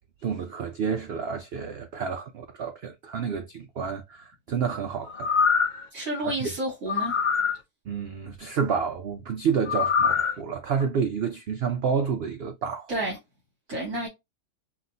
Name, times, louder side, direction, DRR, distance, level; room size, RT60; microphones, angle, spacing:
voice 1, 0.2-5.3 6.2-6.6 7.9-12.9, right 6 dB, 85° right, 0.5 m, -29 dB
sound 1, 5.1-5.9 6.9-7.6 9.7-10.3 10.8-10.9, left 6 dB, 55° left, 0.5 m, -23 dB
voice 2, 5.9-7.1 12.9-13.2 13.7-14.1, right 1 dB, 65° right, 2.5 m, -30 dB
5.7 x 2.7 x 2.7 m
omnidirectional pair, 1.7 m